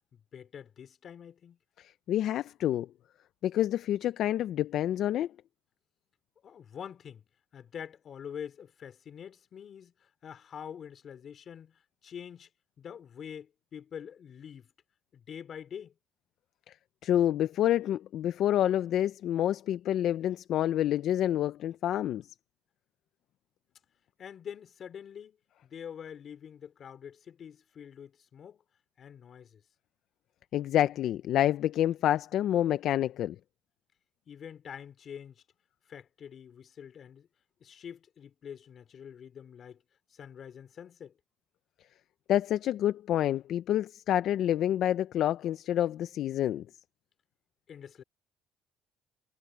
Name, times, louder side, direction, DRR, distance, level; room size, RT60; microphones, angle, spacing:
voice 1, 0.1-1.6 6.4-7.3 7.5-12.5 12.8-14.7 15.1-16.0 24.2-28.6 29.0-29.6 34.3-35.4 35.9-37.3 37.6-39.8 40.1-41.1 47.7-48.0, left 8 dB, 50° left, 3.4 m, -45 dB
voice 2, 1.8-2.9 3.4-5.3 17.0-22.2 30.5-33.4 42.3-46.6, left 12 dB, 65° left, 0.6 m, -28 dB
cardioid pair, 90°, 0 cm